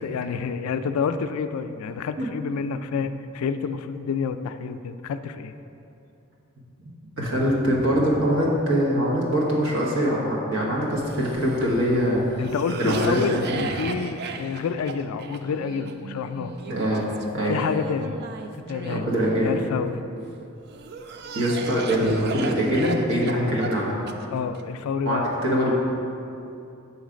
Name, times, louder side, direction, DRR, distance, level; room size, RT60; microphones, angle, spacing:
voice 1, 0.0-5.5 12.4-16.5 17.4-18.2 18.5-19.1 19.4-20.0 23.4-23.5 24.3-25.3, left 6 dB, 85° left, 11 dB, 0.3 m, -28 dB
voice 2, 7.2-12.2 12.8-13.4 16.7-17.1 17.3-17.5 18.9-19.5 21.3-24.0 25.0-25.7, equal, 70° right, -4 dB, 1.3 m, -23 dB
Cough, 10.9-20.1 20.7-24.6, right 5 dB, 50° right, 0.3 m, -36 dB
7.1 x 3.2 x 5.0 m, 2.6 s
head